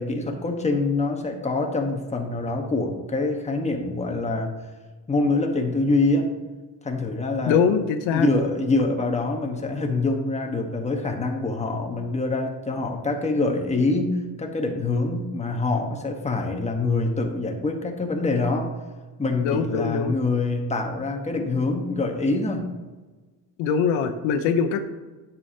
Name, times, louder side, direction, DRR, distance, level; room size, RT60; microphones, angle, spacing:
voice 1, 0.0-4.5 5.1-6.3 6.8-7.6 8.1-18.7 19.2-22.7, left 3 dB, 15° left, 2 dB, 1.1 m, -25 dB
voice 2, 7.5-8.3 19.4-20.1 23.6-24.8, left 6 dB, 85° left, 8 dB, 0.8 m, -22 dB
9.7 x 6.9 x 2.8 m, 1.2 s
cardioid pair, 110°, 45 cm